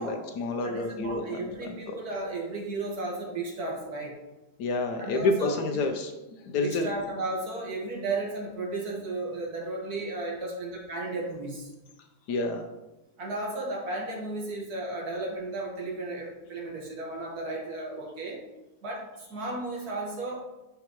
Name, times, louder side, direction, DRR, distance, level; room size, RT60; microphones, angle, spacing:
voice 1, 0.0-1.9 4.6-6.1 6.5-6.9 12.3-12.7, left 3 dB, 80° left, 5 dB, 1.2 m, -29 dB
voice 2, 0.6-4.2 5.0-5.8 6.6-11.7 13.2-18.4 18.8-20.4, right 2 dB, 70° right, -2 dB, 2.0 m, -34 dB
9.0 x 4.8 x 3.0 m, 1.0 s
omnidirectional pair, 1.7 m